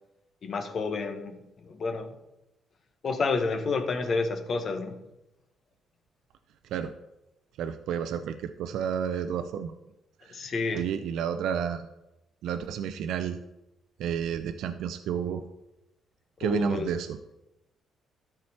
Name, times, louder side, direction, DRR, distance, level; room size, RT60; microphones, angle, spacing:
voice 1, 0.4-2.1 3.0-5.0 10.3-10.9 16.4-17.0, left 4 dB, 50° left, 7 dB, 1.2 m, -30 dB
voice 2, 7.6-9.7 10.3-10.5 10.7-11.9 12.4-13.4 14.0-15.4 16.4-17.2, right 8 dB, 85° right, 8 dB, 0.5 m, -31 dB
13.0 x 4.9 x 4.3 m, 0.92 s
cardioid pair, 90°, 0 cm